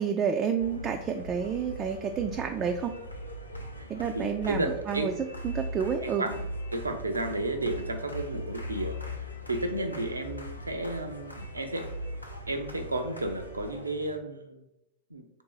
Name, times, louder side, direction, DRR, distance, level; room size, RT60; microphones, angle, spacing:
voice 1, 0.0-3.0 3.9-5.1 5.4-6.2, right 7 dB, 25° right, 4 dB, 0.3 m, -29 dB
sound 1, 0.6-14.2, equal, 85° left, 0.5 m, -40 dB
voice 2, 4.1-5.1 6.0-11.9 12.5-14.6 15.1-15.2, right 1 dB, 80° right, 6 dB, 0.5 m, -33 dB
3.6 x 2.7 x 4.7 m, 0.87 s
figure-of-eight pair, 90°, 0 cm